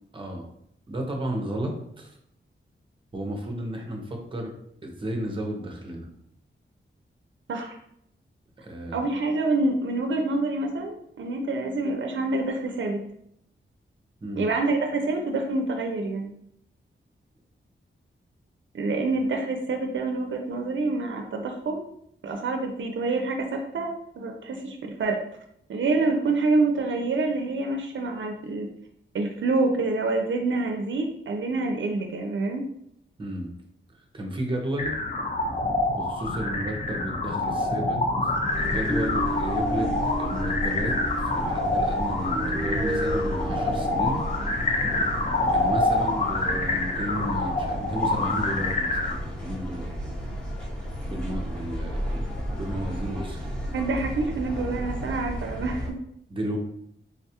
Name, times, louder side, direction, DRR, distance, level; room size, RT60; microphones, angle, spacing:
voice 1, 0.1-0.5 0.9-2.2 3.1-4.5 4.8-6.1 8.6-9.0 14.2-14.5 33.2-33.5 33.9-34.9 35.9-38.0 38.5-39.9 40.2-41.0 41.3-44.2 45.5-49.9 51.1-53.5 56.3-56.6, right 1 dB, 25° right, 2 dB, 0.6 m, -33 dB
voice 2, 8.9-13.0 14.4-16.3 18.7-21.8 22.2-25.2 25.7-28.7 29.1-32.6 53.7-56.0, right 3 dB, 65° right, 2 dB, 0.4 m, -27 dB
sound 1, 34.8-49.1, left 2 dB, 35° left, 0.4 m, -27 dB
sound 2, 38.5-55.9, equal, 5° left, 0.9 m, -32 dB
3.5 x 2.3 x 2.8 m, 0.73 s
wide cardioid pair, 135°, 21 cm